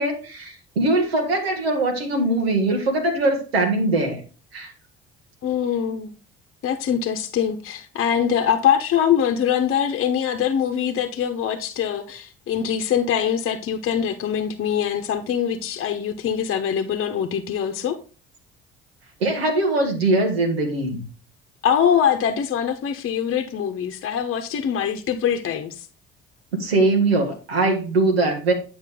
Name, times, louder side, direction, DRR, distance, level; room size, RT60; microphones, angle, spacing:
voice 1, 0.0-4.2 4.5-4.7 19.2-21.1 26.6-28.5, right 2 dB, 85° right, 1.4 m, -21 dB
voice 2, 5.4-6.1 6.6-18.0 21.6-25.7, left 8 dB, 45° left, 1.0 m, -23 dB
9.1 x 5.1 x 3.7 m
figure-of-eight pair, 50°, 30 cm